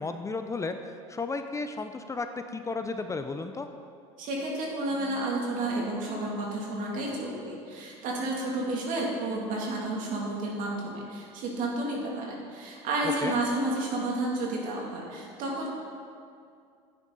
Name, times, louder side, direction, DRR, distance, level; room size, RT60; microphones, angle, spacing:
voice 1, 0.0-2.3 2.5-3.7 13.2-13.3, left 3 dB, 20° left, 8 dB, 0.6 m, -33 dB
voice 2, 4.2-15.7, right 2 dB, 60° right, -2 dB, 2.8 m, -31 dB
11.0 x 9.2 x 4.1 m, 2.4 s
supercardioid pair, 90°, 15 cm